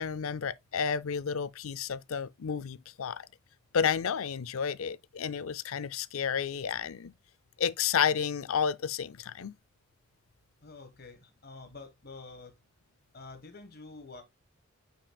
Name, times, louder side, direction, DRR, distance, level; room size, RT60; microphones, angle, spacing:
voice 1, 0.0-3.3 3.7-7.1 7.6-9.6, left 7 dB, 75° left, 0.5 m, -31 dB
voice 2, 10.6-12.5 13.1-14.2, left 3 dB, 45° left, 1.4 m, -48 dB
8.6 x 5.6 x 2.3 m
head